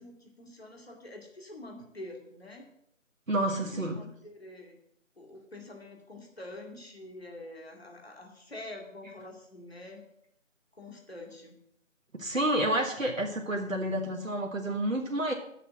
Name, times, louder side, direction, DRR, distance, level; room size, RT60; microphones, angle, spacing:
voice 1, 0.0-2.7 3.3-4.8 5.2-10.0 10.7-11.6, left 1 dB, 50° left, 2 dB, 2.3 m, -46 dB
voice 2, 3.3-4.0 12.1-15.3, right 1 dB, 90° right, 1 dB, 1.6 m, -29 dB
7.9 x 6.7 x 7.6 m, 0.74 s
figure-of-eight pair, 170°, 38 cm